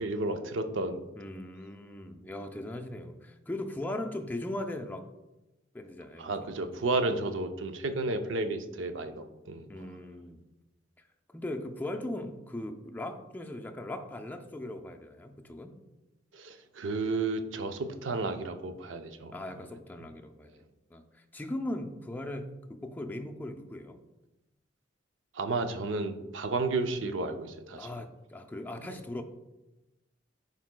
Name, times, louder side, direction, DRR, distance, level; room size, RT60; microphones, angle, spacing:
voice 1, 0.0-1.0 6.2-9.7 16.3-19.3 25.3-27.9, right 3 dB, 85° right, 8 dB, 0.5 m, -32 dB
voice 2, 1.2-5.1 5.7-6.5 9.7-10.4 11.3-15.7 19.3-20.6 20.9-24.0 27.8-29.2, left 1 dB, 10° left, 4 dB, 0.4 m, -39 dB
10.5 x 4.0 x 2.2 m, 1.0 s
head